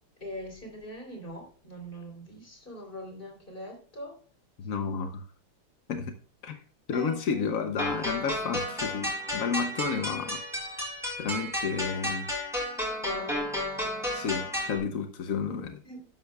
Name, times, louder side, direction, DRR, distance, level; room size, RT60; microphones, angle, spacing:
voice 1, 0.2-4.1 6.9-7.5 12.9-13.5 15.8-16.1, equal, 25° left, 2 dB, 3.7 m, -41 dB
voice 2, 4.6-5.2 5.9-6.2 6.4-6.6 6.9-10.4 11.2-12.3 14.1-15.8, left 6 dB, 65° left, 6 dB, 0.8 m, -31 dB
sound 1, 7.8-14.8, left 1 dB, ahead, 5.0 m, -32 dB
13.0 x 10.0 x 2.3 m, 0.41 s
omnidirectional pair, 2.4 m